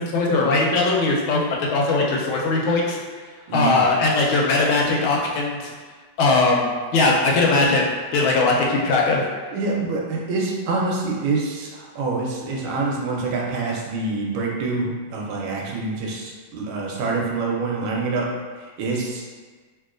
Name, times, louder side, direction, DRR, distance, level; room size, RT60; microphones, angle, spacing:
voice 1, 0.0-1.4 1.7-3.0 3.5-5.7 6.2-9.2, left 3 dB, 85° left, -2 dB, 1.4 m, -20 dB
voice 2, 3.5-3.9 9.5-18.3 18.8-19.2, right 3 dB, 85° right, -1 dB, 1.4 m, -26 dB
3.1 x 2.9 x 2.4 m, 1.4 s
omnidirectional pair, 2.2 m